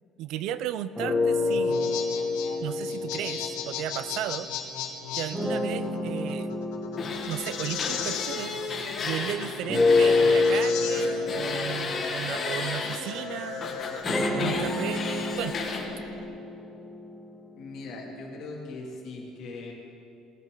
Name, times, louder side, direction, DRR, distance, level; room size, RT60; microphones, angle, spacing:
voice 1, 0.2-1.8 2.6-4.5 5.1-6.5 7.3-8.6 9.0-13.7 14.3-15.7, right 11 dB, 65° right, 15 dB, 0.4 m, -34 dB
sound 1, 1.0-4.5 5.3-9.1 9.7-17.6, left 3 dB, 5° right, 1.2 m, -28 dB
sound 2, 1.5-16.2, left 7 dB, 85° left, 1.3 m, -37 dB
sound 3, 7.0-10.6 10.9-13.0 13.6-15.8, left 4 dB, 35° left, 1.6 m, -33 dB
voice 2, 17.5-19.7, left 2 dB, 55° left, -2 dB, 2.4 m, -40 dB
17.5 x 9.8 x 3.8 m, 2.7 s
cardioid pair, 145°, 0 cm